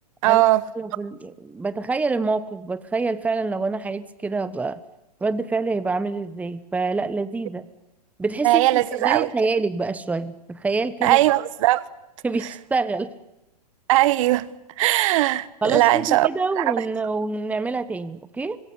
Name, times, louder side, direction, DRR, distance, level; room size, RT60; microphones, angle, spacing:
voice 1, 0.2-0.6 8.4-9.3 11.0-11.8 13.9-14.5 14.8-16.3 16.6-16.7, right 17 dB, 50° right, 1.3 m, -19 dB
voice 2, 0.7-4.8 5.2-7.7 8.2-11.2 12.2-13.1 15.6-18.6, right 3 dB, 5° right, 1.1 m, -26 dB
25.5 x 22.0 x 9.6 m
hypercardioid pair, 120°, 21 cm